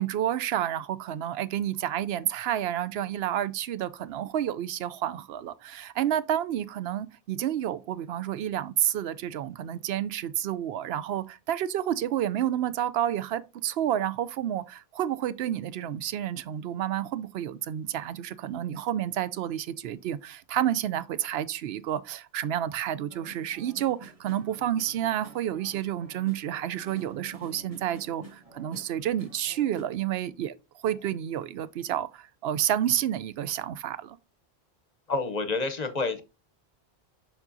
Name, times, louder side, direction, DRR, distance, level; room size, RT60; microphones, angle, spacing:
voice 1, 0.0-30.5 30.8-34.2, right 11 dB, 75° right, 0.8 m, -30 dB
sound 1, 23.1-29.8, right 2 dB, 35° right, 1.4 m, -49 dB
voice 2, 35.1-36.2, left 3 dB, 45° left, 0.8 m, -28 dB
7.1 x 5.5 x 2.6 m
omnidirectional pair, 1.0 m